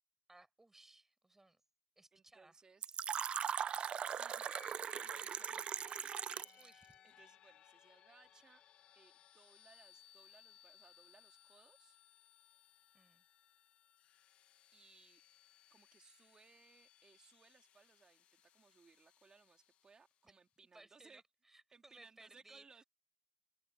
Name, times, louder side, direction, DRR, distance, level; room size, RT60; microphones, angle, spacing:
voice 1, 0.3-1.6 2.0-2.6 6.5-7.0 12.9-13.2 20.7-22.6, right 2 dB, 15° right, 6.5 m, -62 dB
voice 2, 2.1-3.0 4.0-6.5 7.0-8.6 8.9-12.0 14.7-15.2 15.7-21.2 21.7-22.8, right 5 dB, 40° right, 3.4 m, -65 dB
Fill (with liquid), 2.8-6.7, right 8 dB, 55° right, 0.4 m, -40 dB
sound 1, 3.6-20.3, left 11 dB, 80° left, 1.2 m, -65 dB
open air
cardioid pair, 85°, 2 cm